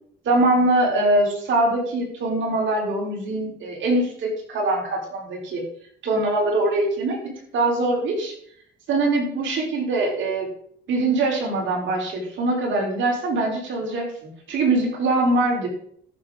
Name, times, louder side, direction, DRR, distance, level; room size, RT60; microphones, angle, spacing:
voice 1, 0.2-5.6 6.0-8.3 8.9-10.5 10.9-15.7, right 2 dB, 75° right, -1 dB, 3.8 m, -23 dB
14.0 x 6.6 x 3.7 m, 0.62 s
cardioid pair, 90°, 20 cm